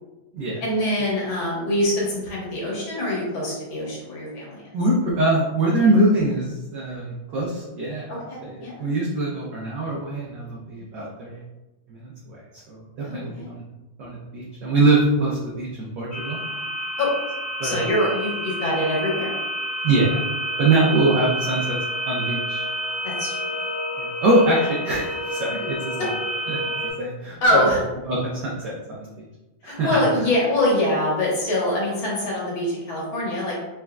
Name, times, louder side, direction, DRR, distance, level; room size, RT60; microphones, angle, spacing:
voice 1, 0.6-4.7 8.1-8.9 13.0-13.5 17.0-17.1 17.6-19.4 23.0-23.4 24.5-24.6 26.0-26.1 27.4-27.8 29.6-33.6, left 1 dB, 65° left, -4 dB, 1.9 m, -24 dB
voice 2, 4.7-11.4 11.9-12.4 12.7-13.6 14.0-16.4 17.6-17.9 19.8-20.2 20.6-21.8 22.1-22.6 24.0-25.9 26.5-26.6 27.0-27.4 28.1-29.1 29.6-30.0, right 2 dB, 70° right, -4 dB, 1.1 m, -23 dB
sound 1, 16.1-26.9, equal, 25° left, 0.6 m, -29 dB
4.2 x 3.5 x 2.2 m, 1.1 s
omnidirectional pair, 2.4 m